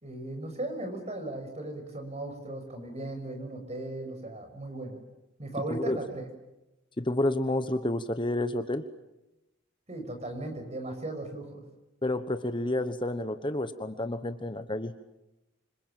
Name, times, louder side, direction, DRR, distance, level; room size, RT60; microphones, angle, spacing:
voice 1, 0.0-5.0 5.4-6.3 9.9-11.6, right 2 dB, 35° right, 6 dB, 6.2 m, -37 dB
voice 2, 5.7-6.0 7.0-8.8 12.0-14.9, left 1 dB, 25° left, 9 dB, 1.1 m, -30 dB
28.0 x 26.0 x 7.6 m, 0.95 s
head